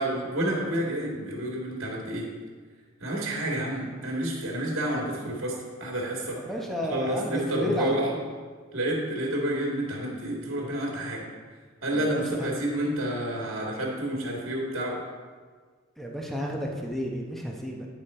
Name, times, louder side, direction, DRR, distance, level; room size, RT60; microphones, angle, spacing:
voice 1, 0.0-2.3 3.0-6.4 6.8-8.1 8.7-11.2 11.8-15.0, right 1 dB, 75° right, -2 dB, 2.0 m, -29 dB
voice 2, 6.4-8.2 11.9-12.5 16.0-17.9, equal, ahead, -1 dB, 0.8 m, -32 dB
9.5 x 5.2 x 4.3 m, 1.5 s
head